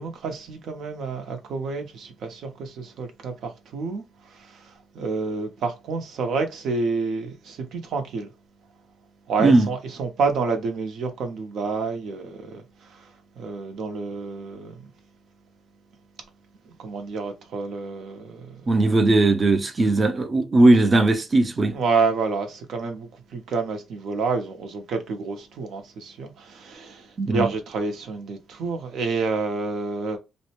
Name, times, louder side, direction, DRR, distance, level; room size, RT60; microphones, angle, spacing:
voice 1, 0.0-8.3 9.3-14.9 16.7-18.7 21.7-30.2, right 4 dB, 70° right, 0.7 m, -29 dB
voice 2, 18.7-21.8 27.2-27.5, right 2 dB, 30° right, 0.5 m, -18 dB
2.6 x 2.1 x 2.8 m
cardioid pair, 90°, 0 cm